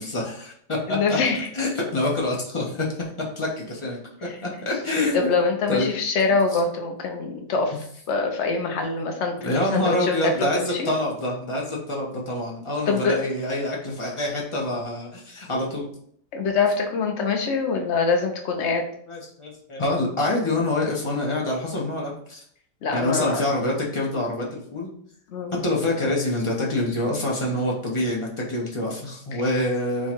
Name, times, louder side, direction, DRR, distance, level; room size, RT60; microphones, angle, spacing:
voice 1, 0.0-1.2 1.5-2.9 3.4-4.0 4.4-5.3 5.7-5.9 9.4-15.9 19.1-22.4 22.9-24.9 25.6-30.1, left 1 dB, 30° left, -3 dB, 0.6 m, -26 dB
voice 2, 0.9-1.5 5.1-7.7 8.1-10.9 12.9-13.2 16.3-18.8 22.8-23.4 25.3-25.5 29.3-29.4, left 4 dB, 55° left, 3 dB, 0.8 m, -24 dB
4.5 x 2.3 x 4.4 m, 0.65 s
omnidirectional pair, 1.9 m